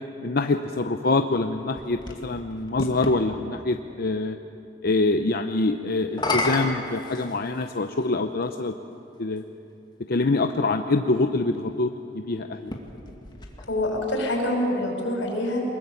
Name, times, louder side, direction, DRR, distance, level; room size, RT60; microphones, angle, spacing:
voice 1, 0.2-4.4 4.8-8.7 9.2-9.4 10.1-12.7, left 2 dB, 55° left, 6 dB, 0.7 m, -25 dB
sound 1, 1.6-3.2 6.0-7.8 8.7-8.8 12.5-14.1, left 2 dB, 25° left, 2.3 m, -31 dB
voice 2, 13.6-15.6, left 1 dB, 85° left, 1 dB, 6.1 m, -26 dB
23.5 x 21.5 x 8.5 m, 2.8 s
head